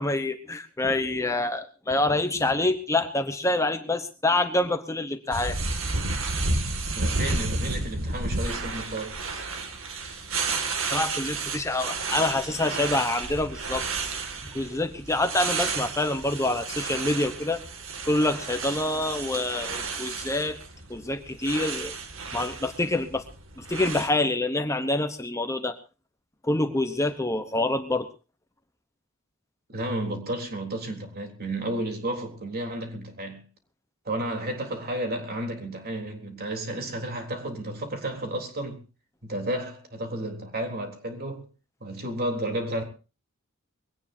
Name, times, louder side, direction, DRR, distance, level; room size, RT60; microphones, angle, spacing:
voice 1, 0.0-5.6 10.9-13.8 14.1-14.2 14.5-17.6 18.0-20.6 20.9-21.9 22.3-23.2 23.6-25.7 26.4-28.1, left 2 dB, 15° left, 1.0 m, -26 dB
sound 1, 5.3-24.1, right 3 dB, 70° right, 2.3 m, -32 dB
voice 2, 6.6-9.5 29.7-33.4 34.1-38.8 39.2-41.5 41.8-42.8, right 1 dB, 45° right, 3.7 m, -32 dB
22.5 x 17.5 x 2.8 m
head